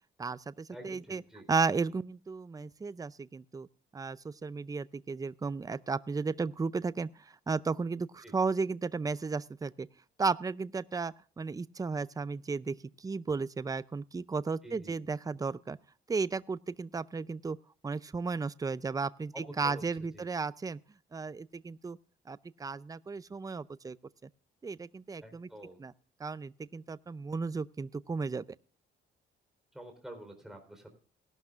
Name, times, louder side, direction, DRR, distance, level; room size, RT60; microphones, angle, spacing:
voice 1, 0.2-1.2 1.5-3.7 3.9-7.1 7.5-9.9 10.2-15.8 16.1-17.6 17.8-20.8 21.1-22.0 22.3-24.0 24.6-25.5 25.8-25.9 26.2-28.4, right 4 dB, 20° right, 18 dB, 0.5 m, -34 dB
voice 2, 0.7-1.4 8.2-8.3 14.6-14.9 19.3-19.8 20.1-20.2 25.2-25.8 29.7-30.9, right 1 dB, ahead, 4 dB, 4.1 m, -48 dB
18.5 x 12.0 x 2.5 m, 0.43 s
cardioid pair, 90°, 20 cm